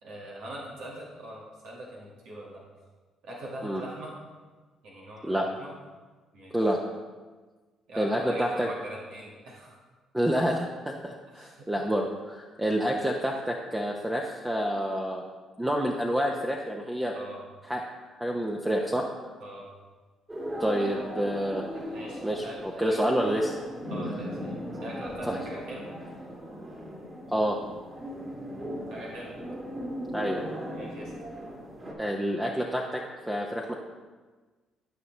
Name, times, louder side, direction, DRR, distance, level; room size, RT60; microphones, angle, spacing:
voice 1, 0.0-2.6 3.2-4.1 4.8-5.7 6.3-6.5 7.9-9.8 11.3-11.7 17.1-17.4 19.4-19.7 20.8-20.9 21.7-23.0 23.9-25.9 28.9-29.3 30.7-31.1, right 1 dB, 75° right, -5 dB, 2.1 m, -42 dB
voice 2, 8.0-8.7 10.1-15.2 15.6-17.1 17.7-17.8 18.2-19.0 20.6-21.6 22.2-23.6 25.2-25.4 27.3-27.6 30.1-30.4 32.0-33.0 33.3-33.8, equal, 10° right, 0 dB, 0.9 m, -28 dB
sound 1, 20.3-31.9, equal, 30° right, 2.8 m, -38 dB
12.5 x 5.4 x 3.3 m, 1.4 s
supercardioid pair, 70°, 0 cm